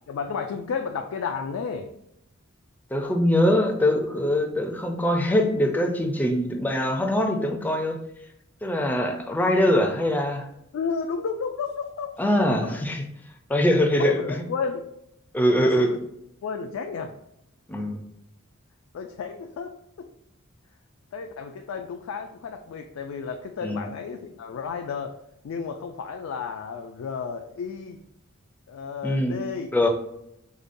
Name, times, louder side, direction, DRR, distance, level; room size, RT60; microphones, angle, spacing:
voice 1, 0.1-1.9 10.7-12.2 14.0-14.9 15.6-16.0 16.4-17.1 18.9-19.7 20.0-20.1 21.1-25.1 25.4-28.0 28.7-29.7, left 5 dB, 75° left, 4 dB, 0.3 m, -32 dB
voice 2, 2.9-8.0 8.6-10.5 12.2-13.0 13.5-14.2 15.3-15.9 17.7-18.0 23.6-23.8 29.0-29.4 29.7-29.9, left 1 dB, 10° left, 3 dB, 0.4 m, -22 dB
4.9 x 2.2 x 2.5 m, 0.78 s
head